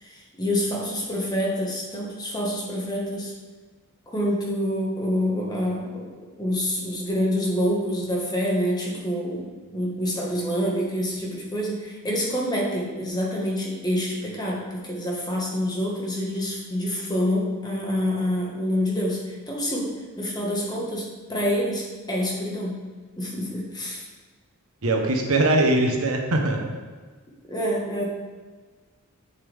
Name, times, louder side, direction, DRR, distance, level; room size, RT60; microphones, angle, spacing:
voice 1, 0.0-3.3 4.1-6.1 6.4-22.8 23.2-24.0 27.5-28.1, equal, 20° left, -3 dB, 1.5 m, -27 dB
voice 2, 24.8-26.7, right 2 dB, 80° right, 2 dB, 1.1 m, -21 dB
8.1 x 6.8 x 3.5 m, 1.4 s
head